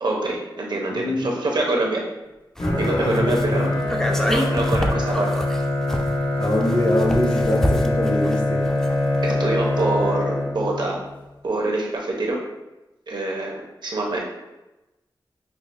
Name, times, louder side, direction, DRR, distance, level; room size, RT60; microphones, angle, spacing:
voice 1, 0.0-2.0 2.8-3.7 4.3-5.3 9.2-11.0 11.4-12.4 13.1-14.2, right 2 dB, 60° right, -1 dB, 0.7 m, -25 dB
voice 2, 0.9-1.3 2.8-3.8 6.4-8.7, left 1 dB, 55° left, -1 dB, 0.8 m, -24 dB
Bowed string instrument, 2.6-10.9, left 2 dB, 80° left, 0.9 m, -23 dB
sound 1, 2.6-9.3 9.6-9.7, equal, 5° left, 0.3 m, -28 dB
5.5 x 2.1 x 2.5 m, 1.0 s
wide cardioid pair, 105°, 8 cm